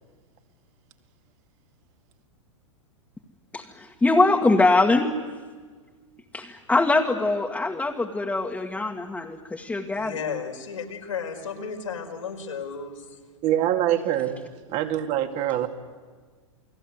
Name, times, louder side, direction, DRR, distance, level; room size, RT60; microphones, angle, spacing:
voice 1, 3.5-5.1 6.3-10.1, left 2 dB, 10° left, 0 dB, 2.0 m, -22 dB
voice 2, 9.9-13.2, left 6 dB, 85° left, 2 dB, 5.1 m, -34 dB
voice 3, 13.4-15.7, right 12 dB, 45° right, 5 dB, 2.6 m, -25 dB
29.5 x 21.5 x 8.2 m, 1.5 s
hypercardioid pair, 110°, 16 cm